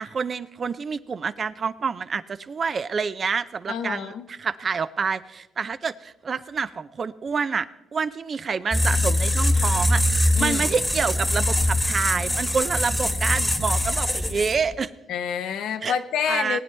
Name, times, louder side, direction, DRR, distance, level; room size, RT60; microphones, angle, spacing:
voice 1, 0.0-14.9 15.8-15.9 16.3-16.6, right 5 dB, 45° right, 14 dB, 0.5 m, -28 dB
voice 2, 3.7-4.3 10.3-10.6 15.1-16.6, left 8 dB, 80° left, 9 dB, 0.8 m, -28 dB
sound 1, 8.7-14.7, left 1 dB, 10° left, 0.9 m, -23 dB
19.0 x 9.1 x 3.3 m, 0.92 s
cardioid pair, 90°, 0 cm